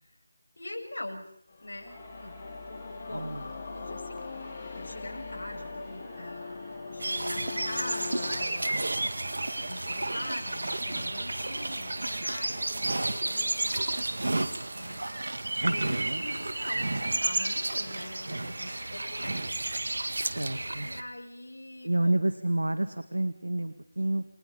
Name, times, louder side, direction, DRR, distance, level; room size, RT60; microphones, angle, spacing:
voice 1, 0.6-1.3 1.6-2.4 3.1-3.4 3.7-8.8 9.5-15.1 15.6-19.6 20.8-22.3, left 1 dB, 65° left, 3 dB, 7.3 m, -43 dB
sound 1, 1.5-8.5, left 4 dB, 35° left, 3.4 m, -40 dB
Singing, 1.9-19.4, equal, ahead, 7.0 m, -51 dB
voice 2, 3.1-3.5 15.6-16.2 20.2-20.9 21.8-24.2, right 1 dB, 85° right, 9 dB, 2.0 m, -29 dB
sound 2, 7.0-21.0, right 2 dB, 65° right, 1.9 m, -31 dB
29.5 x 21.5 x 5.4 m, 0.73 s
figure-of-eight pair, 165°, 0 cm